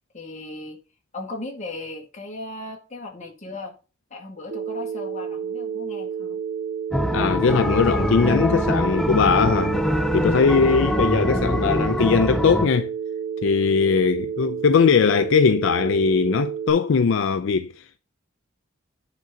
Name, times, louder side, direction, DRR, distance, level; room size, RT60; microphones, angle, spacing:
voice 1, 0.1-0.8 1.1-3.8 4.1-6.4, left 2 dB, 35° left, 1.9 m, -37 dB
Telephone, 4.5-16.7, right 7 dB, 65° right, 2.4 m, -30 dB
sound 1, 6.9-12.7, equal, ahead, 0.5 m, -24 dB
voice 2, 7.1-9.8 10.1-12.9 13.4-18.0, left 5 dB, 70° left, 0.4 m, -20 dB
9.1 x 3.8 x 5.6 m
head